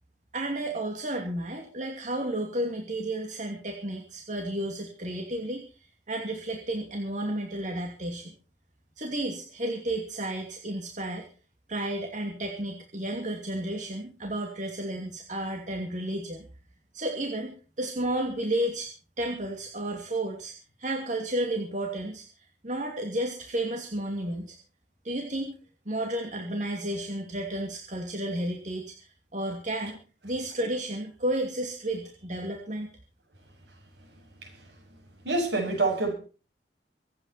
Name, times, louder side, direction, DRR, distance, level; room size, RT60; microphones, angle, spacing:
voice 1, 0.3-5.6 6.1-8.3 9.0-11.3 11.7-16.5 16.9-18.9 19.2-20.5 20.8-22.2 22.6-24.6 25.0-25.6 25.9-28.8 29.3-32.9, right 1 dB, 45° right, 2.8 m, -32 dB
voice 2, 33.7-34.1 34.4-35.0 35.2-36.1, right 2 dB, 80° right, 7.5 m, -29 dB
24.5 x 9.7 x 4.4 m
head